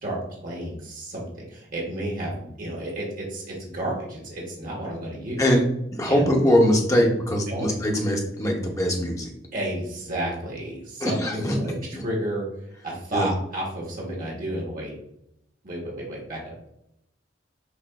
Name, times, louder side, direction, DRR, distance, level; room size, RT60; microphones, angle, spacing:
voice 1, 0.0-5.4 6.1-6.3 6.9-7.1 7.5-7.7 9.5-15.0 15.6-16.5, right 1 dB, 50° right, -3 dB, 1.2 m, -32 dB
voice 2, 5.9-9.3 11.0-11.5 11.9-12.0 13.1-13.3, equal, 15° left, 0 dB, 0.7 m, -22 dB
5.9 x 2.6 x 2.3 m, 0.78 s
head